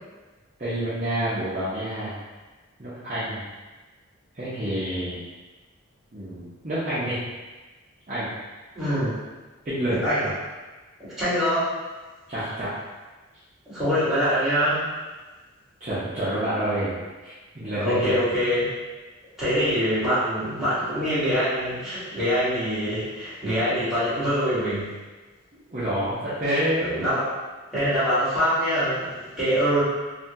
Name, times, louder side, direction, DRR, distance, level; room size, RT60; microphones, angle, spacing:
voice 1, 0.6-2.2 2.8-3.4 4.3-5.2 6.1-7.2 8.1-8.3 9.6-10.0 12.3-12.7 15.8-17.0 17.2-18.1 25.7-26.8, right 1 dB, 35° right, -13 dB, 0.7 m, -28 dB
voice 2, 8.7-9.2 9.9-10.3 11.2-11.7 13.7-14.9 17.6-18.7 19.4-24.9 26.8-27.3 27.7-29.8, equal, ahead, -15 dB, 1.3 m, -24 dB
3.4 x 2.2 x 2.7 m, 1.2 s
head